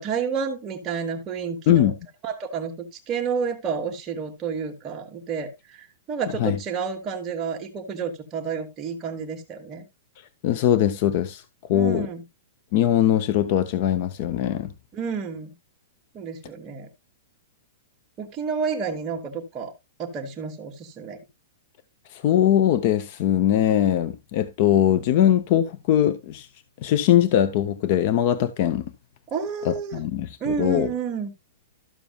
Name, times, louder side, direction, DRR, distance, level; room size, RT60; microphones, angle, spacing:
voice 1, 0.0-1.9 2.2-9.9 11.7-12.2 14.9-15.5 16.1-16.9 18.2-19.7 20.0-21.2 29.3-30.0 30.4-31.3, right 6 dB, 20° right, 1.1 m, -30 dB
voice 2, 10.4-11.4 11.7-12.1 12.7-14.7 22.1-26.5 26.8-28.9 29.6-30.9, left 11 dB, 35° left, 0.6 m, -21 dB
12.5 x 7.0 x 2.3 m
supercardioid pair, 175°, 0 cm